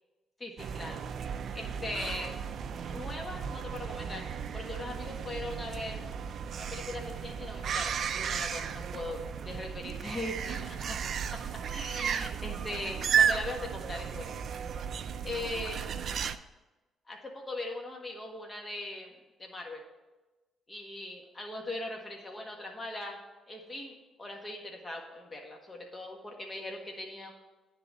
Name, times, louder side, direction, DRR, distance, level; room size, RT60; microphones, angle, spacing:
voice 1, 0.4-2.4 2.8-6.0 6.6-11.0 11.3-11.4 11.7-14.4 15.2-15.8 17.1-19.1 19.4-19.8 20.7-23.2 23.5-27.3, left 2 dB, 25° left, 1 dB, 1.6 m, -40 dB
sound 1, 0.6-16.4, right 7 dB, 60° right, 0.4 m, -34 dB
10.0 x 4.0 x 7.4 m, 1.1 s
cardioid pair, 90°, 0 cm